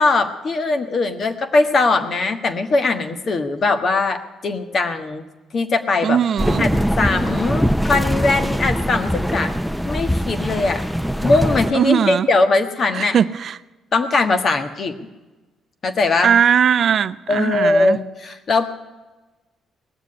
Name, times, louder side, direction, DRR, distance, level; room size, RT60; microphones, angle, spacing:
voice 1, 0.0-5.2 5.5-6.2 6.6-6.7 7.0-9.6 9.8-10.8 11.2-13.2 13.9-14.9 15.8-16.3 17.3-18.7, left 3 dB, 50° left, 1.5 m, -20 dB
voice 2, 6.0-6.6 11.7-12.3 12.9-13.6 16.2-18.0, right 8 dB, 60° right, 0.5 m, -19 dB
sound 1, 6.4-11.7, equal, ahead, 0.5 m, -22 dB
18.5 x 7.4 x 9.8 m
cardioid pair, 90°, 0 cm